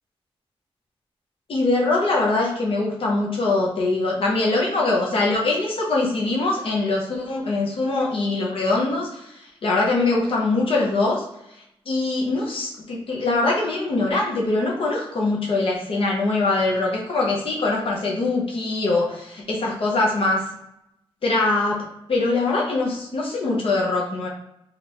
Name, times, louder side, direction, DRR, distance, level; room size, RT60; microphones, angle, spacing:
voice 1, 1.5-9.3 9.6-11.2 11.9-20.5 21.2-21.8 22.1-24.3, left 2 dB, 70° left, -2 dB, 0.7 m, -22 dB
3.6 x 2.4 x 2.9 m, 0.83 s
wide cardioid pair, 180°, 10 cm